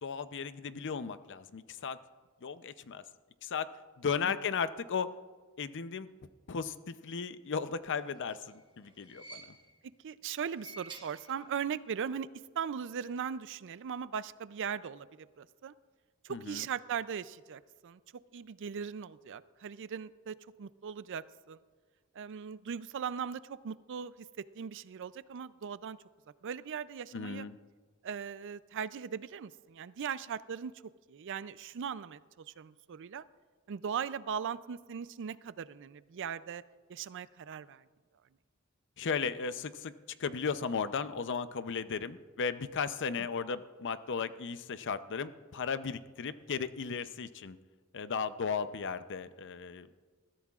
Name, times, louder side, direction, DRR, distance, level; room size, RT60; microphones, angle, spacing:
voice 1, 0.0-2.0 2.4-3.0 3.4-3.7 4.0-5.1 5.6-6.1 6.5-9.6 16.3-16.7 27.1-27.6 39.0-39.9 40.2-47.6 47.9-49.9, left 5 dB, 55° left, 13 dB, 0.6 m, -35 dB
sound 1, 8.0-9.9 10.4-11.8 12.1-12.2 13.3-13.4, right 3 dB, 20° right, 1.5 m, -52 dB
voice 2, 10.0-12.3 12.6-15.7 16.2-18.0 18.3-21.6 22.2-24.1 24.6-26.0 26.4-27.5 28.0-30.7 31.1-32.2 32.6-33.2 33.7-36.6 36.9-37.8, right 7 dB, 55° right, 16 dB, 0.4 m, -39 dB
21.0 x 14.0 x 2.4 m, 1.5 s
head